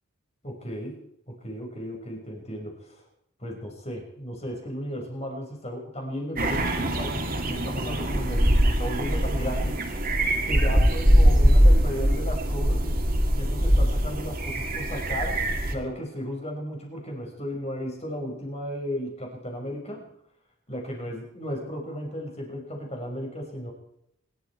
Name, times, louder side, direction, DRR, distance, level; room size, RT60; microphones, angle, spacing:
voice 1, 0.4-1.0 1.3-3.0 3.4-9.8 10.4-13.0 13.3-15.4 15.7-20.1 20.7-23.7, equal, 30° left, 1 dB, 5.4 m, -35 dB
sound 1, 6.4-15.7, equal, 45° right, 2.6 m, -22 dB
26.0 x 12.0 x 4.6 m, 0.76 s
head